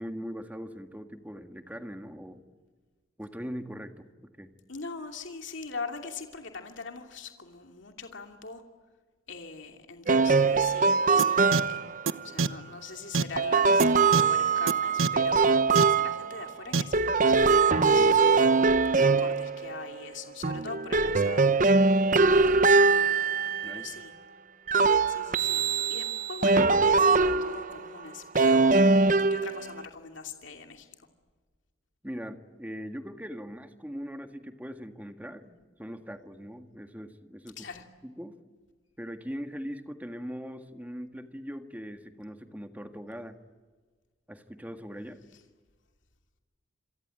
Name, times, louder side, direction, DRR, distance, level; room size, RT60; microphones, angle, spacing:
voice 1, 0.0-2.4 3.2-4.1 4.4-4.5 23.6-23.9 32.0-37.7 38.0-38.4 39.0-43.4 44.3-45.2, equal, 10° right, 6 dB, 1.8 m, -40 dB
voice 2, 4.7-8.6 9.3-11.8 12.2-18.1 18.9-21.5 22.7-24.1 25.1-30.9 37.6-37.8 45.3-45.4, left 4 dB, 65° left, 4 dB, 2.7 m, -42 dB
sound 1, 10.1-12.0 13.4-16.5 16.9-20.0 20.4-24.0 24.7-27.8 28.3-29.8, right 4 dB, 40° right, 0.8 m, -22 dB
sound 2, 11.2-11.3 11.5-11.6 12.1-12.2 12.4-12.5 13.1-13.2 13.8-13.9 14.1-14.2 14.7-14.8 15.0-15.1 15.8-15.9 16.7-16.8, right 4 dB, 85° right, 1.0 m, -24 dB
28.0 x 23.5 x 8.9 m, 1.4 s
head